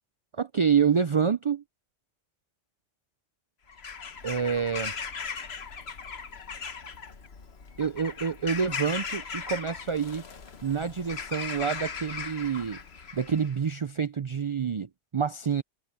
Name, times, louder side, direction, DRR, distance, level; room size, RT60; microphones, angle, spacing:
voice 1, 0.3-1.6 4.2-4.9 7.8-10.2 10.6-12.8 13.1-15.6, right 6 dB, 50° right, 0.3 m, -27 dB
Bird vocalization bird call bird song / Crow, 3.7-13.6, left 5 dB, 60° left, 1.5 m, -38 dB
open air
omnidirectional pair, 1.3 m